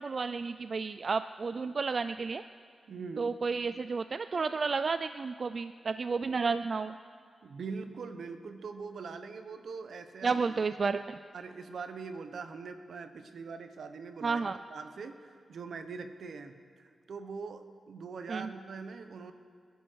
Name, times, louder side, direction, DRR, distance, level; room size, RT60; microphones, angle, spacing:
voice 1, 0.0-2.4 3.2-6.9 10.2-11.2 14.2-14.6 18.3-18.5, right 4 dB, 45° right, 11 dB, 0.3 m, -31 dB
voice 2, 2.9-3.4 7.4-10.7 11.3-14.4 14.7-19.3, right 4 dB, 75° right, 8 dB, 1.1 m, -42 dB
27.0 x 11.0 x 4.7 m, 2.1 s
wide cardioid pair, 110°, 0 cm